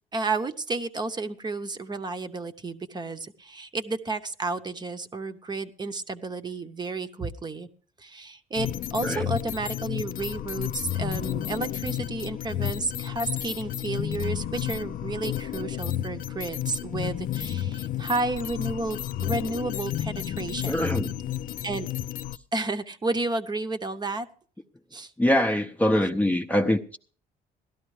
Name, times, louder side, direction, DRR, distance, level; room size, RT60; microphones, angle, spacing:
voice 1, 0.1-7.7 8.0-20.9 21.6-21.9 22.5-24.3 24.9-25.1, right 3 dB, 25° right, 0.8 m, -32 dB
sound 1, 8.6-22.4, left 11 dB, 55° left, 0.5 m, -31 dB
voice 2, 20.7-21.1 25.2-27.0, left 1 dB, 10° left, 0.7 m, -23 dB
17.0 x 12.5 x 3.2 m
cardioid pair, 110°, 17 cm